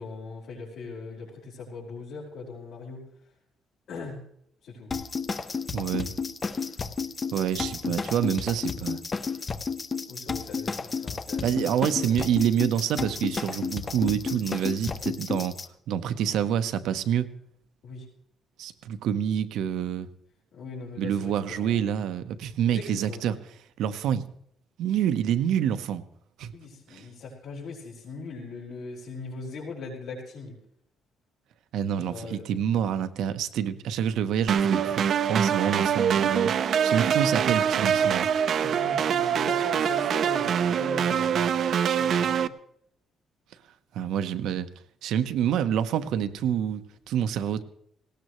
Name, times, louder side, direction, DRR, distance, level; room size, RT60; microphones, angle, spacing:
voice 1, 0.0-3.0 3.9-4.2 4.6-4.9 10.1-11.7 17.8-18.0 20.5-21.8 22.6-23.2 26.5-30.5 32.0-32.5 38.0-38.1 38.4-42.5, left 4 dB, 70° left, -7 dB, 4.9 m, -40 dB
sound 1, 4.9-15.7, left 5 dB, 30° left, 0.7 m, -32 dB
voice 2, 5.7-6.1 7.3-9.0 11.4-15.6 15.9-17.3 18.6-20.1 21.0-23.4 23.8-24.2 24.8-26.0 26.4-26.5 26.9-27.0 31.7-36.5 36.8-38.3 43.9-44.7 45.0-47.6, right 9 dB, 90° right, 11 dB, 1.0 m, -27 dB
sound 2, 34.5-42.5, right 8 dB, 55° right, 0.6 m, -24 dB
18.5 x 18.0 x 3.2 m, 0.70 s
cardioid pair, 145°, 0 cm